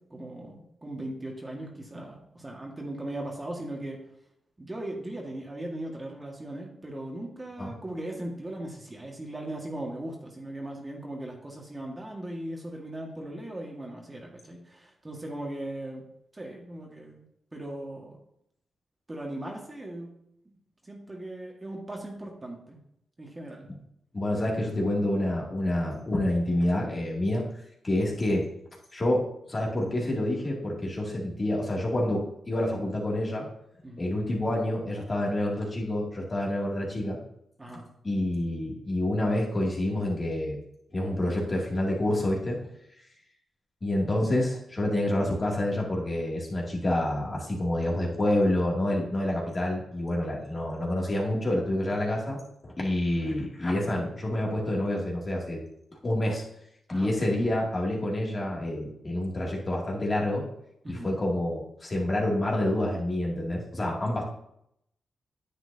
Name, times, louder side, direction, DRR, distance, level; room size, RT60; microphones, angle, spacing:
voice 1, 0.1-4.0 4.6-16.0 16.3-18.2 19.1-20.1 20.8-22.8 23.2-23.7 33.8-34.1 37.6-37.9 50.2-50.4 56.9-57.1 60.8-61.1, right 1 dB, 25° right, 0 dB, 1.8 m, -38 dB
voice 2, 24.1-27.5 27.8-28.5 28.9-33.5 34.0-37.2 38.0-40.6 40.9-42.6 43.8-52.4 52.6-55.6 56.0-56.4 56.9-60.4 60.9-64.2, left 1 dB, 35° left, -3 dB, 2.6 m, -28 dB
9.6 x 7.8 x 2.8 m, 0.76 s
cardioid pair, 70°, 0 cm